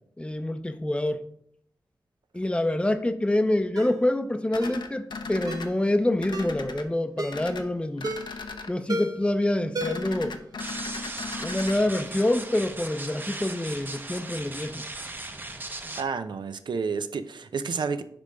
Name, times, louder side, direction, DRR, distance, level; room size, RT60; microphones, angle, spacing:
voice 1, 0.2-1.3 2.3-8.1 8.7-10.4 11.4-14.8, left 1 dB, 15° left, 0.6 m, -26 dB
Ringtone, 3.7-4.0 4.6-4.8 5.5-5.7 6.3-6.6 7.2-7.5 8.0-8.4 8.9-9.3 9.7-10.2 10.5-10.6, right 1 dB, 60° right, 1.0 m, -33 dB
sound 1, 4.5-5.7 6.2-6.8 7.3-7.6 8.0-8.7 9.8-11.8, left 4 dB, 85° left, 0.8 m, -37 dB
sound 2, 10.6-16.0, right 2 dB, 25° right, 0.7 m, -37 dB
voice 2, 16.0-18.0, right 5 dB, 85° right, 0.6 m, -30 dB
10.0 x 3.4 x 5.2 m
wide cardioid pair, 125°, 8 cm